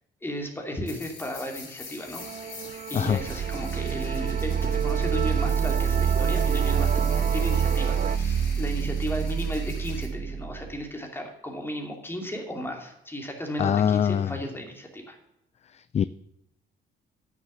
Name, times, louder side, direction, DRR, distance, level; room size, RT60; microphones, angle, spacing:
voice 1, 0.2-2.3 2.9-15.2, equal, 10° left, 2.7 m, -35 dB
sound 1, 0.9-10.1, left 4 dB, 70° left, 4.3 m, -43 dB
Musical instrument, 2.2-8.2, right 9 dB, 40° right, 0.5 m, -33 dB
sound 2, 3.2-10.8, right 7 dB, 55° right, 1.0 m, -26 dB
voice 2, 13.6-14.4 15.7-16.0, left 8 dB, 35° left, 0.4 m, -24 dB
9.3 x 6.9 x 6.6 m
cardioid pair, 90°, 20 cm